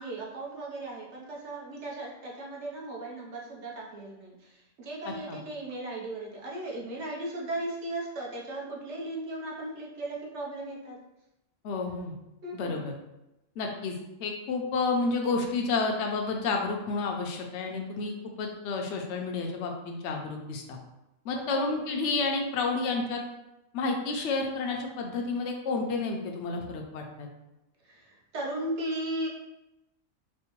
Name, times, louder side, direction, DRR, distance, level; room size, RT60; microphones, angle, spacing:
voice 1, 0.0-4.3 4.8-11.0 12.4-12.9 21.3-21.9 27.9-28.1 28.3-29.3, right 1 dB, 60° right, -3 dB, 1.0 m, -36 dB
voice 2, 5.1-5.4 11.6-12.1 12.5-12.9 13.6-18.1 18.4-20.8 21.2-23.2 23.7-27.3, left 3 dB, 65° left, 2 dB, 0.8 m, -30 dB
4.3 x 2.0 x 2.9 m, 0.92 s
omnidirectional pair, 1.4 m